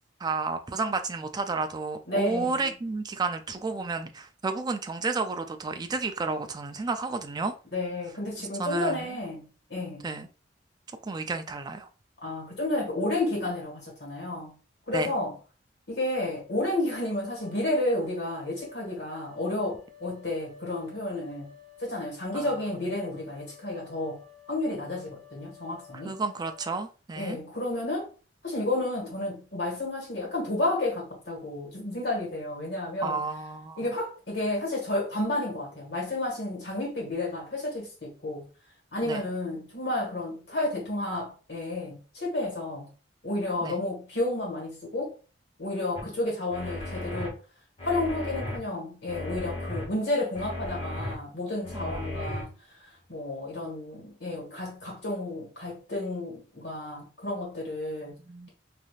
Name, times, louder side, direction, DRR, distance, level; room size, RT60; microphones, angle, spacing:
voice 1, 0.2-7.5 8.6-9.1 10.0-10.3 11.0-11.9 14.9-15.1 22.3-22.6 25.9-27.4 33.0-33.9 39.0-39.2 43.6-43.8 46.0-46.2 51.7-52.4 58.2-58.5, right 3 dB, 20° right, 0.3 m, -32 dB
voice 2, 2.1-2.7 7.7-10.0 12.2-14.6 14.9-15.3 15.9-21.5 21.8-24.2 24.5-26.2 27.1-28.1 28.4-33.2 33.8-38.4 38.9-42.9 43.2-45.1 45.6-47.4 47.8-52.5 52.8-58.2, left 2 dB, 65° left, 1.4 m, -31 dB
sound 1, 17.0-26.8, left 7 dB, 35° right, 1.3 m, -52 dB
sound 2, 46.0-46.1 46.5-47.3 47.8-48.6 49.1-49.9 50.4-51.1 51.6-52.4, left 1 dB, 35° left, 1.1 m, -35 dB
3.3 x 2.6 x 2.3 m
head